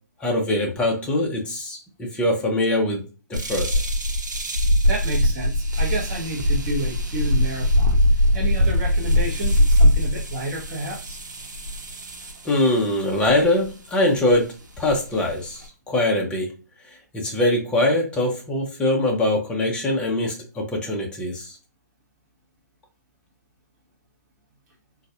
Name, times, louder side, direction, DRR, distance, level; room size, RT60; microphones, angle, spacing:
voice 1, 0.2-3.7 12.4-16.5 17.1-21.5, left 1 dB, 10° left, 1 dB, 0.6 m, -23 dB
sound 1, 3.3-12.5 13.3-13.7 14.3-14.4 14.9-15.6, equal, 85° right, 0.8 m, -21 dB
voice 2, 4.9-11.2, right 1 dB, 25° right, -2 dB, 1.1 m, -30 dB
4.0 x 2.5 x 2.4 m, 0.35 s
hypercardioid pair, 140°, 10 cm